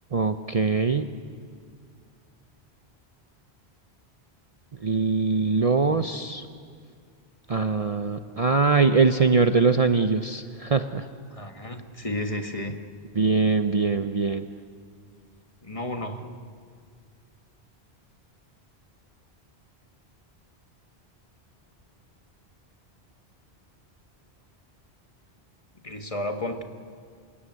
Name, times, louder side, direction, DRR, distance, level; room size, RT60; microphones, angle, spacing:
voice 1, 0.1-1.1 4.8-6.4 7.5-11.0 13.2-14.5, right 4 dB, 40° right, 9 dB, 0.7 m, -22 dB
voice 2, 11.3-12.8 15.6-16.3 25.8-26.6, left 1 dB, 30° left, 6 dB, 1.5 m, -32 dB
28.0 x 16.5 x 9.6 m, 2.1 s
omnidirectional pair, 1.1 m